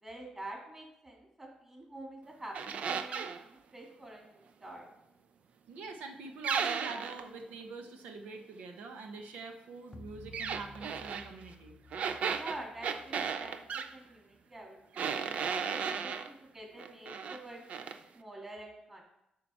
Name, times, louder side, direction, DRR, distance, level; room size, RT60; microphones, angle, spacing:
voice 1, 0.0-4.9 12.3-15.1 15.4-19.0, right 1 dB, 20° right, -1 dB, 2.8 m, -47 dB
sound 1, 2.5-3.4 6.4-7.3 10.3-11.3 11.9-13.9 15.0-16.3 16.8-17.4 17.7-18.0, right 6 dB, 60° right, 0.5 m, -35 dB
voice 2, 5.7-11.8 16.0-16.1, right 3 dB, 90° right, 5 dB, 1.1 m, -45 dB
sound 2, 9.9-14.4, left 2 dB, 20° left, 0.5 m, -55 dB
8.8 x 5.0 x 5.8 m, 0.82 s
cardioid pair, 115°, 2 cm